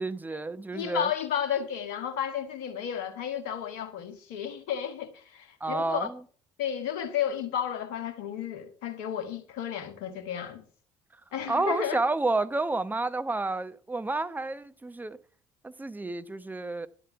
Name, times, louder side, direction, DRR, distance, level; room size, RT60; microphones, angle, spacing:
voice 1, 0.0-1.1 5.6-6.2 11.5-15.2 15.6-16.9, right 2 dB, 15° right, 0.9 m, -30 dB
voice 2, 0.7-6.1 6.6-10.6 11.3-12.1, left 9 dB, 70° left, 1.6 m, -32 dB
11.0 x 7.7 x 5.8 m
hypercardioid pair, 55°, 13 cm